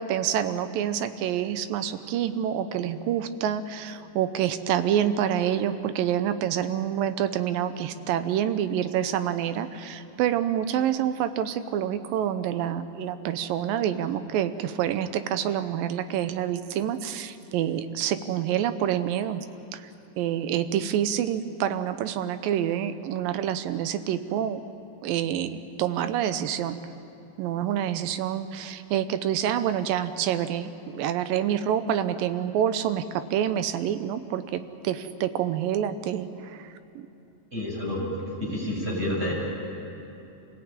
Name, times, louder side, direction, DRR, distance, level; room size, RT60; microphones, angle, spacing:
voice 1, 0.0-19.5 19.7-19.9 20.2-24.6 25.0-26.8 27.4-37.1, right 10 dB, 75° right, 11 dB, 2.5 m, -27 dB
voice 2, 37.5-38.0 38.4-39.3, left 1 dB, 15° right, -5 dB, 6.7 m, -29 dB
26.0 x 17.5 x 8.9 m, 2.8 s
omnidirectional pair, 4.3 m